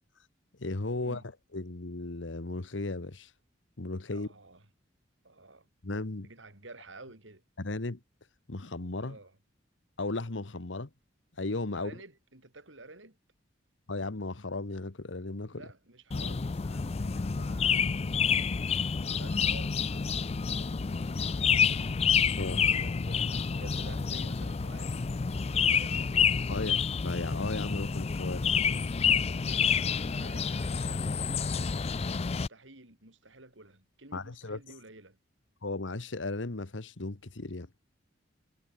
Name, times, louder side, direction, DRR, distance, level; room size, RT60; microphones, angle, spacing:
voice 1, 0.6-1.2 1.5-3.3 3.8-4.3 5.8-6.3 7.6-8.0 8.5-9.2 10.0-10.9 11.4-11.9 13.9-15.6 22.4-22.7 26.5-28.6 34.1-34.6 35.6-37.7, left 2 dB, 80° left, 1.3 m, -35 dB
voice 2, 4.1-4.7 5.2-5.7 6.2-7.4 9.0-9.4 11.7-13.2 15.5-18.0 19.0-22.0 22.7-26.0 29.3-31.8 32.3-35.2, right 2 dB, 90° right, 5.8 m, -52 dB
sound 1, 16.1-32.5, left 6 dB, 35° left, 0.4 m, -29 dB
head